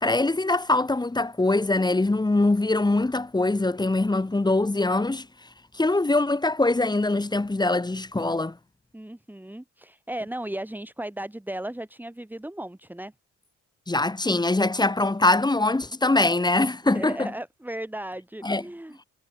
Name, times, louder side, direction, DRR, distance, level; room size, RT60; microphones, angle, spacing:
voice 1, 0.0-5.3 5.7-8.6 13.9-17.3 18.4-18.6, left 2 dB, 15° left, 1.8 m, -23 dB
voice 2, 8.9-13.1 16.9-19.1, right 1 dB, 5° right, 4.8 m, -36 dB
cardioid pair, 90°, 30 cm